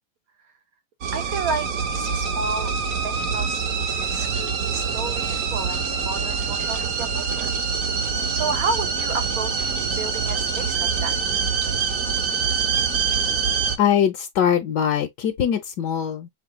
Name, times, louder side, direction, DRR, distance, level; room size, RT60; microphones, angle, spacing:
sound 1, 1.0-13.8, right 5 dB, 50° right, 1.1 m, -25 dB
voice 1, 1.1-2.7 3.0-7.5 8.3-11.2, right 4 dB, 70° right, 0.9 m, -31 dB
voice 2, 13.8-16.3, left 9 dB, 65° left, 1.4 m, -22 dB
6.0 x 2.3 x 3.6 m
omnidirectional pair, 2.1 m